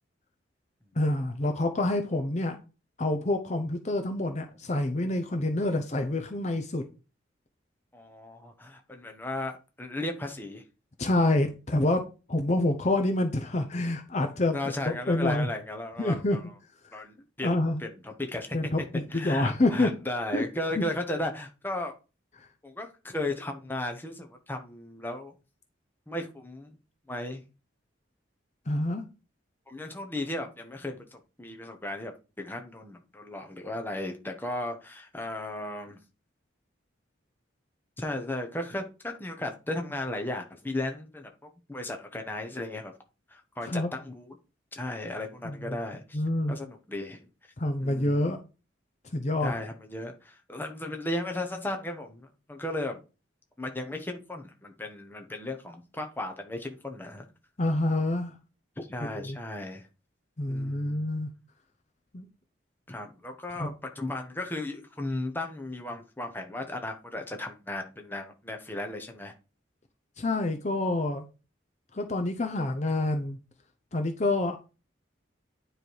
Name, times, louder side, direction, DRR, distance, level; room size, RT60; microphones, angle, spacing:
voice 1, 0.9-2.6 3.0-6.9 11.0-12.0 12.3-14.6 14.9-15.5 16.0-16.4 17.4-17.8 18.5-19.9 20.3-20.4 20.8-20.9 22.4-22.5 28.7-29.0 43.6-43.9 45.4-45.8 46.1-46.6 47.6-48.4 49.1-49.5 57.6-58.3 59.1-59.4 60.4-61.3 62.1-62.3 63.6-63.7 70.2-71.3 71.9-73.4 73.9-74.6, left 2 dB, 35° left, 0.7 m, -27 dB
voice 2, 7.9-10.6 14.5-16.4 16.9-18.6 19.1-21.9 22.6-25.3 26.1-26.8 27.1-27.4 29.7-36.0 38.0-42.9 43.3-44.4 44.7-46.2 46.5-47.3 47.8-48.2 49.4-53.0 53.6-57.3 58.8-59.9 60.5-61.0 62.9-69.3, left 1 dB, 10° left, 1.0 m, -35 dB
9.6 x 3.3 x 4.6 m
head